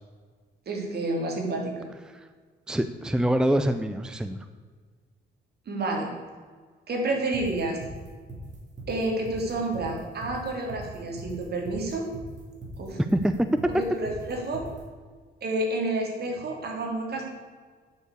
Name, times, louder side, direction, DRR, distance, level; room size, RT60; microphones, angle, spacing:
voice 1, 0.6-1.9 5.7-6.1 6.9-7.8 8.9-12.1 12.8-13.0 13.6-14.6 15.4-17.3, right 2 dB, 55° right, 1 dB, 3.3 m, -29 dB
voice 2, 2.7-4.4 13.0-13.3, right 1 dB, 5° right, 9 dB, 0.6 m, -25 dB
sound 1, 7.3-14.8, right 1 dB, 40° right, 3.4 m, -40 dB
9.5 x 7.2 x 8.4 m, 1.5 s
cardioid pair, 90°, 20 cm